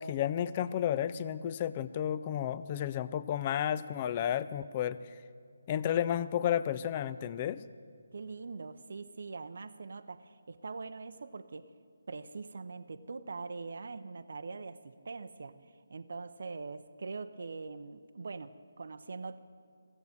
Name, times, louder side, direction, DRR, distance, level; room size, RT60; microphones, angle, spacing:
voice 1, 0.0-5.0 5.7-7.6, left 10 dB, 25° left, 16 dB, 0.4 m, -32 dB
voice 2, 8.1-11.7 12.1-19.4, right 4 dB, 55° right, 13 dB, 0.6 m, -43 dB
15.5 x 8.0 x 9.1 m, 2.3 s
figure-of-eight pair, 150°, 0 cm